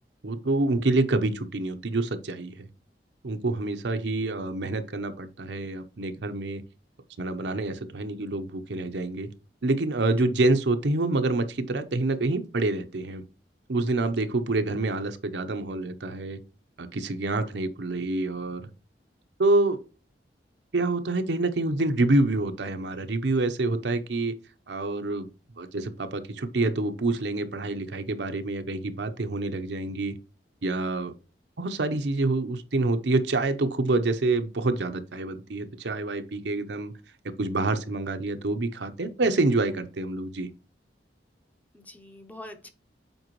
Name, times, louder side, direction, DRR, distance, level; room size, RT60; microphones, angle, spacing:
voice 1, 0.2-2.7 3.2-6.6 7.2-9.3 9.6-13.2 13.7-16.4 16.8-18.6 19.4-19.8 20.7-24.3 24.7-25.3 25.6-30.1 30.6-31.1 31.6-36.9 37.4-40.5, right 2 dB, 75° right, 0.8 m, -27 dB
voice 2, 13.9-14.3 41.7-42.7, left 1 dB, 10° left, 0.7 m, -45 dB
7.9 x 4.6 x 3.0 m
head